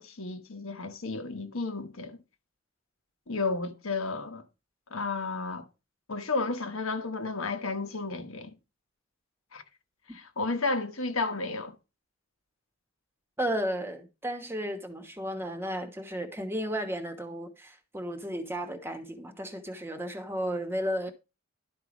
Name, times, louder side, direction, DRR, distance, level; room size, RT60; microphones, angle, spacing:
voice 1, 0.0-2.2 3.3-4.4 4.9-5.6 6.1-8.5 9.5-9.6 10.1-11.7, left 3 dB, 70° left, 1.3 m, -32 dB
voice 2, 13.4-21.1, equal, 10° right, 1.1 m, -33 dB
11.5 x 4.6 x 5.2 m
head